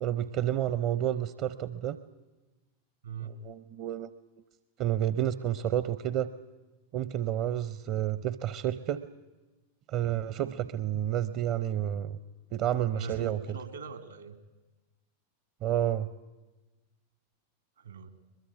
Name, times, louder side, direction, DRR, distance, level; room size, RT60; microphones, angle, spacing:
voice 1, 0.0-2.0 3.2-4.1 4.8-6.3 6.9-9.0 9.9-12.2 12.5-13.4 15.6-16.1, right 11 dB, 40° right, 15 dB, 0.7 m, -30 dB
voice 2, 3.0-3.4 12.9-14.4 17.8-18.1, right 6 dB, 70° right, 10 dB, 2.2 m, -41 dB
22.5 x 21.5 x 8.2 m, 1.2 s
figure-of-eight pair, 90°, 0 cm